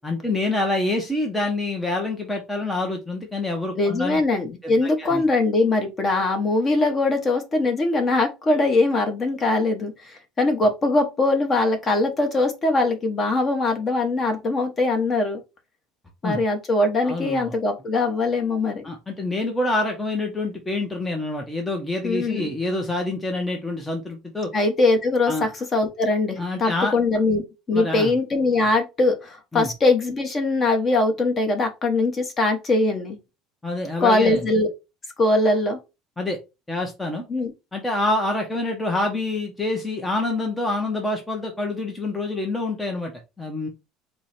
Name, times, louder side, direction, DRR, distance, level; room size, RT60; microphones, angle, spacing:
voice 1, 0.0-4.2 4.6-5.2 16.2-16.4 17.0-17.5 18.8-24.5 25.3-25.5 26.4-26.9 27.7-28.1 29.5-29.7 33.6-34.4 36.2-36.4 36.7-37.2 37.7-43.1 43.4-43.7, left 2 dB, 10° left, 0.7 m, -26 dB
voice 2, 3.8-15.4 16.2-18.8 22.0-22.5 24.5-27.4 27.7-33.2 34.0-34.7 35.2-35.8 37.3-37.5, left 2 dB, 25° left, 1.1 m, -21 dB
4.4 x 2.2 x 4.2 m
cardioid pair, 135°, 0 cm